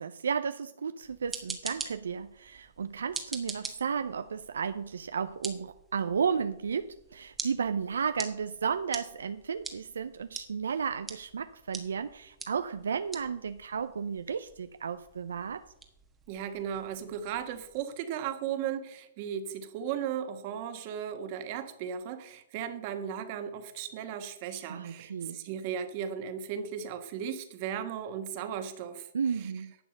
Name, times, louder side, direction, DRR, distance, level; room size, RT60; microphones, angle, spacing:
voice 1, 0.0-15.6 24.7-25.4 29.1-29.7, right 6 dB, 80° right, 11 dB, 0.5 m, -33 dB
sound 1, 1.0-17.8, right 4 dB, 10° right, 1.3 m, -45 dB
voice 2, 16.3-29.1 29.4-29.5, right 8 dB, 45° right, 8 dB, 1.5 m, -36 dB
11.0 x 7.1 x 6.4 m, 0.83 s
hypercardioid pair, 130°, 0 cm